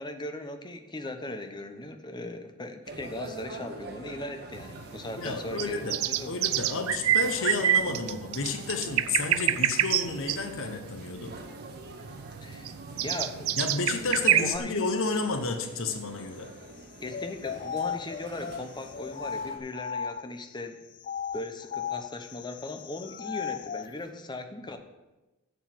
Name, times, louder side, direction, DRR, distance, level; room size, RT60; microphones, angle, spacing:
voice 1, 0.0-6.3 12.4-13.6 14.4-14.7 17.0-20.8 21.3-24.8, left 2 dB, 20° left, 6 dB, 0.9 m, -38 dB
sound 1, 2.8-19.6, right 2 dB, 50° right, 1.6 m, -46 dB
sound 2, 4.5-14.6, right 11 dB, 70° right, 0.5 m, -27 dB
voice 2, 5.2-6.0 6.2-11.3 13.6-16.5, left 3 dB, 65° left, 5 dB, 1.0 m, -31 dB
sound 3, 17.1-20.5 21.0-23.9, left 7 dB, 40° left, 0.3 m, -36 dB
8.1 x 7.1 x 7.6 m, 1.1 s
head